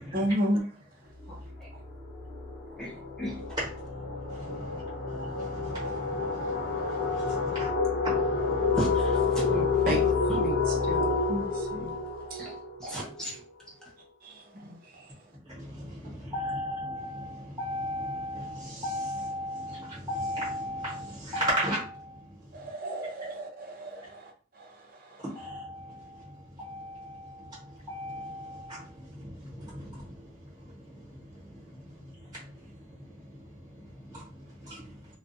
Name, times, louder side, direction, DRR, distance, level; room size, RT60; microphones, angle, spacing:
voice 1, 0.1-0.7 9.5-10.0 10.4-11.9 12.3-12.4 14.2-15.0 22.5-24.3 24.6-24.7 25.0-25.4, equal, 50° right, 1 dB, 0.7 m, -33 dB
sound 1, 1.2-1.5 1.8-13.3, left 4 dB, 45° left, 0.9 m, -29 dB
voice 2, 1.3-1.7 2.8-2.9 3.2-3.4 7.5-7.6 8.7-10.0 10.3-10.4 10.7-10.8 12.4-12.5 12.8-13.3, equal, 5° left, -6 dB, 0.9 m, -35 dB
voice 3, 16.3-22.2 25.3-26.3 26.6-27.6 27.9-28.8, equal, 25° right, -6 dB, 1.1 m, -34 dB
2.4 x 2.3 x 2.6 m, 0.40 s
head